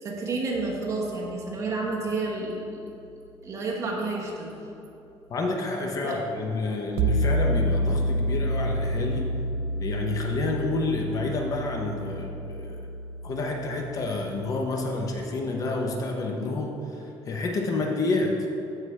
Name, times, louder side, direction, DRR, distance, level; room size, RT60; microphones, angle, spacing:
voice 1, 0.0-2.8 3.4-4.6 6.0-6.2, right 3 dB, 30° right, -2 dB, 1.2 m, -30 dB
sound 1, 0.6-1.1 7.0-15.1, right 1 dB, 75° right, 0.4 m, -29 dB
voice 2, 5.3-9.3 9.8-12.8 13.2-18.5, left 2 dB, 35° left, 2 dB, 0.6 m, -29 dB
14.0 x 4.8 x 3.2 m, 2.8 s
cardioid pair, 180°, 10 cm